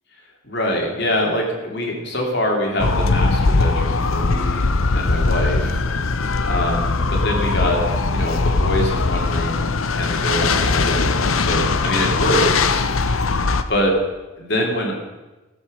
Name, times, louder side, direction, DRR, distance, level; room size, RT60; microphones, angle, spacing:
voice 1, 0.4-5.8 6.5-7.8 8.1-9.7 9.9-13.3 13.7-13.9 14.4-14.9, equal, 55° left, 0 dB, 2.7 m, -24 dB
sound 1, 2.8-13.6, left 3 dB, 80° left, 0.7 m, -20 dB
14.5 x 7.8 x 6.4 m, 1.1 s
head